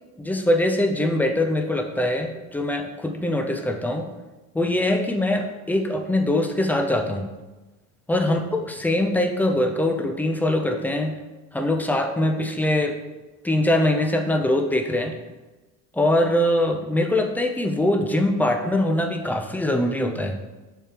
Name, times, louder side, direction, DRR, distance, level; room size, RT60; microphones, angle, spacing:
voice 1, 0.2-4.1 4.5-7.3 8.1-11.1 11.5-12.9 13.4-15.1 15.9-20.3, left 1 dB, 5° left, 4 dB, 0.5 m, -22 dB
6.8 x 6.4 x 2.9 m, 1.1 s
cardioid pair, 145°, 33 cm